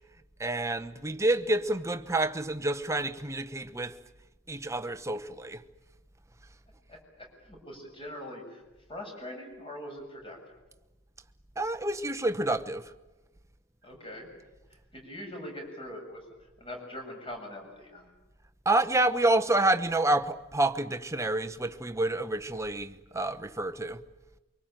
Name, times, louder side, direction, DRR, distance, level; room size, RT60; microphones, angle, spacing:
voice 1, 0.4-4.0 4.5-5.6 11.6-12.9 18.7-24.0, right 2 dB, 15° right, 1.0 m, -28 dB
voice 2, 6.9-8.6 8.9-10.4 13.8-14.3 14.7-16.3 16.6-18.1, left 1 dB, 25° left, 7.3 m, -42 dB
24.5 x 24.0 x 9.1 m
head